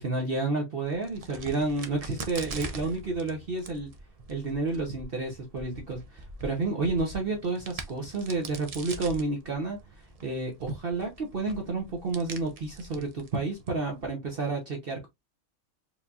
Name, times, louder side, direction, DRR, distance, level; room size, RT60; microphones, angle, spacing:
voice 1, 0.0-3.9 4.3-15.1, right 3 dB, 45° right, 0.9 m, -30 dB
Crack, 0.8-14.1, right 3 dB, 65° right, 0.3 m, -43 dB
4.6 x 2.7 x 2.4 m
omnidirectional pair, 1.5 m